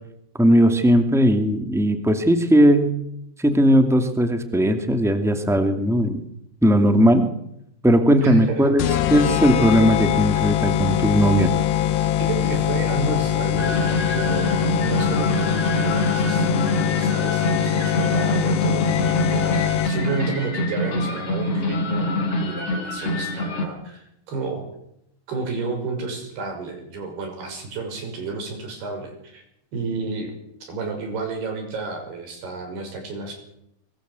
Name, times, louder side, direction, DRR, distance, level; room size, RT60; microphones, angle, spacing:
voice 1, 0.4-2.9 3.4-6.2 6.6-7.2 7.8-8.8 9.1-11.5, equal, ahead, 7 dB, 0.6 m, -18 dB
voice 2, 8.2-9.1 12.2-24.7 25.3-29.4 29.7-30.3 30.6-33.4, right 3 dB, 70° right, 5 dB, 7.9 m, -31 dB
sound 1, 8.8-20.2, left 11 dB, 85° left, 3.2 m, -23 dB
sound 2, 13.6-23.7, left 1 dB, 35° left, 5.1 m, -25 dB
23.5 x 21.0 x 8.2 m, 0.78 s
omnidirectional pair, 4.7 m